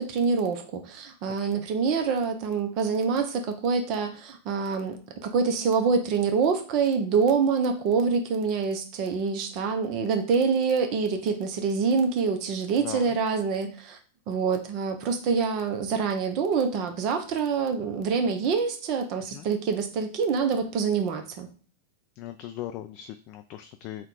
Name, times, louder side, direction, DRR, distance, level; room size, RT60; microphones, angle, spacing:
voice 1, 0.0-14.0 14.3-21.5, right 5 dB, 45° right, 6 dB, 0.8 m, -26 dB
voice 2, 1.3-1.7 12.8-13.2 19.3-19.5 22.2-24.1, left 12 dB, 45° left, 6 dB, 0.4 m, -39 dB
3.7 x 2.4 x 4.4 m, 0.41 s
figure-of-eight pair, 95°, 0 cm